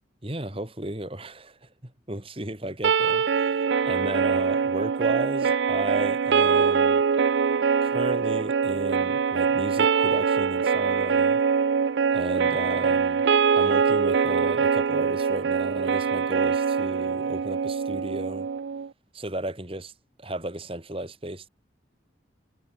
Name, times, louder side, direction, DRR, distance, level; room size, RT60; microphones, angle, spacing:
voice 1, 0.2-7.0 7.8-11.4 12.1-13.2 13.6-18.5 19.1-19.9 20.2-21.5, right 1 dB, 30° right, 2.3 m, -34 dB
sound 1, 2.8-18.9, right 6 dB, 70° right, 0.4 m, -23 dB
head